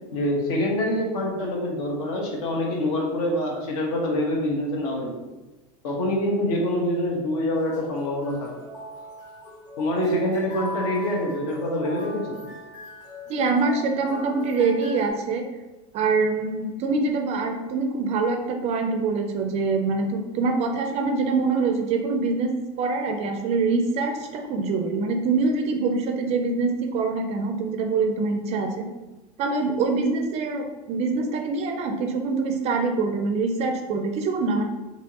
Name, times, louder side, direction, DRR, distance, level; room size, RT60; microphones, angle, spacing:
voice 1, 0.1-5.1 5.8-8.5 9.8-12.5, left 1 dB, 70° left, 0 dB, 1.1 m, -25 dB
sound 1, 7.5-15.1, equal, 35° left, 1.1 m, -40 dB
voice 2, 13.3-15.5 15.9-22.5 22.8-28.9 29.4-34.6, right 4 dB, 35° right, 4 dB, 0.4 m, -24 dB
4.4 x 2.8 x 2.8 m, 1.1 s
supercardioid pair, 155°, 20 cm